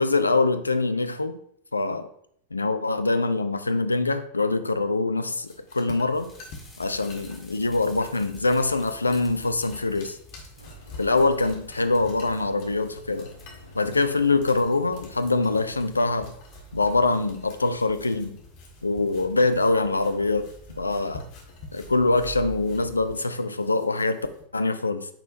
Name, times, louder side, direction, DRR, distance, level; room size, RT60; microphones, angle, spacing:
voice 1, 0.0-1.4 1.7-2.1 2.5-6.3 6.8-10.2 11.0-13.3 13.7-16.3 16.7-18.4 18.8-20.5 20.8-21.2 21.7-24.2 24.5-25.1, left 3 dB, 80° left, 10 dB, 0.5 m, -24 dB
sound 1, 5.3-24.4, left 3 dB, 45° left, 1.7 m, -48 dB
sound 2, 6.1-23.1, right 2 dB, 5° left, 1.8 m, -48 dB
sound 3, 10.6-15.7, left 1 dB, 85° right, 1.1 m, -50 dB
9.0 x 5.5 x 2.6 m, 0.69 s
figure-of-eight pair, 90°, 0 cm